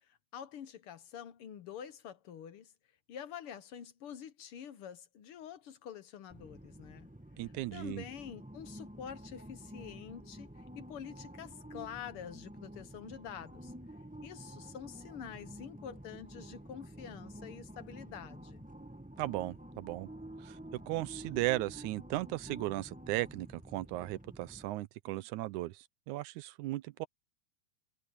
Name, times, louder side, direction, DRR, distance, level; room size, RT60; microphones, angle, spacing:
voice 1, 0.0-2.7 3.1-7.1 7.4-13.7 14.2-18.6, left 8 dB, 65° left, 1.4 m, -47 dB
sound 1, 6.3-24.7, right 1 dB, 5° right, 0.7 m, -50 dB
voice 2, 7.4-8.0 19.2-20.1 20.4-27.1, right 17 dB, 80° right, 2.0 m, -36 dB
omnidirectional pair, 3.6 m